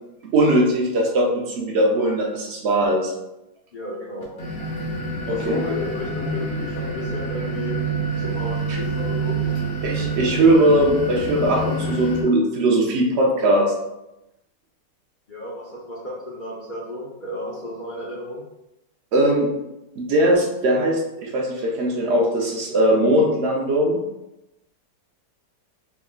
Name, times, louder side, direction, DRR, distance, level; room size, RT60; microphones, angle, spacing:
voice 1, 0.3-3.1 5.3-5.6 8.7-8.8 9.8-13.7 19.1-19.5 20.0-24.0, right 1 dB, 65° right, -1 dB, 0.6 m, -20 dB
voice 2, 3.7-4.3 5.3-7.8 8.1-9.4 15.3-18.4, left 1 dB, 90° left, -6 dB, 0.4 m, -32 dB
sound 1, 4.2-12.2, right 2 dB, 45° left, 1.1 m, -27 dB
3.8 x 3.4 x 2.3 m, 0.92 s
omnidirectional pair, 1.9 m